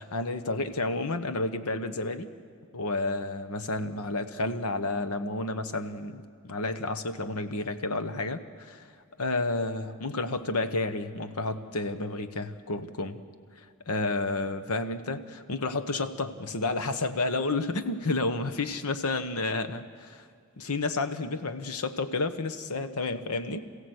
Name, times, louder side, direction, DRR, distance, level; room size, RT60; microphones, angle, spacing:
voice 1, 0.0-2.3 2.7-8.8 9.2-13.2 13.6-20.2 20.6-23.6, left 2 dB, 90° left, 10 dB, 1.1 m, -31 dB
27.0 x 16.0 x 8.0 m, 2.2 s
head